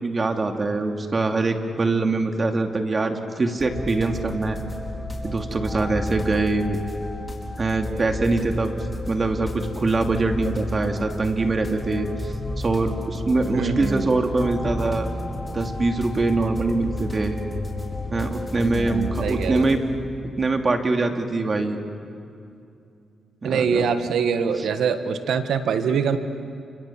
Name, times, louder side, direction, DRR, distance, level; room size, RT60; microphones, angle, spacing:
voice 1, 0.0-4.6 5.2-6.8 7.6-8.7 9.1-15.1 15.5-17.4 18.1-19.8 20.4-21.8 23.4-23.9 24.6-24.7, right 3 dB, 40° right, 4 dB, 2.8 m, -23 dB
sound 1, 3.6-19.8, left 1 dB, 20° left, 5.1 m, -32 dB
voice 2, 13.5-14.1 18.5-19.7 23.4-26.2, right 6 dB, 80° right, 9 dB, 1.6 m, -24 dB
29.5 x 27.0 x 7.5 m, 2.5 s
cardioid pair, 65°, 0 cm